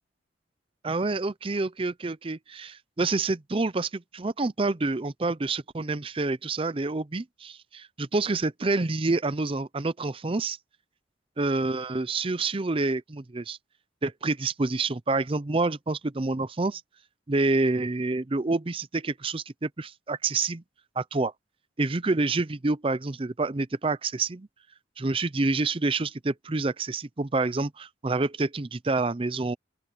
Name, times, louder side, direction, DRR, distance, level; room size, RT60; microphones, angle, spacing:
voice 1, 0.8-10.6 11.4-13.6 14.0-16.8 17.3-20.6 21.0-21.3 21.8-24.5 25.0-29.6, right 3 dB, 30° right, 0.6 m, -28 dB
open air
head